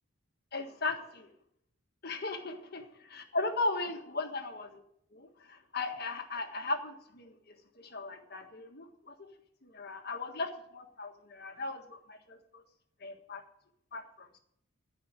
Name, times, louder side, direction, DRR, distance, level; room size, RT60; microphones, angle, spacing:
voice 1, 0.5-1.3 2.0-4.8 5.1-7.3 7.8-9.3 9.6-12.6 13.0-13.4 13.9-14.3, left 3 dB, 50° left, 5 dB, 1.5 m, -37 dB
15.0 x 5.0 x 8.9 m, 0.73 s
head